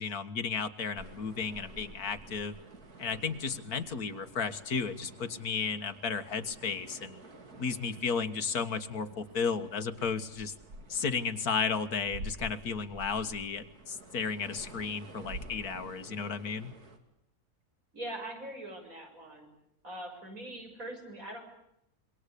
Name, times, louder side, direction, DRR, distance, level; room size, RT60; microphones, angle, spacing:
voice 1, 0.0-2.5 3.0-7.2 7.6-10.5 10.9-16.7, left 5 dB, 75° left, 10 dB, 2.1 m, -33 dB
sound 1, 0.9-17.0, right 2 dB, 80° right, 3.4 m, -49 dB
voice 2, 17.9-19.5 19.8-21.4, right 1 dB, 60° right, 3 dB, 7.5 m, -42 dB
27.0 x 23.5 x 8.4 m, 0.77 s
omnidirectional pair, 1.6 m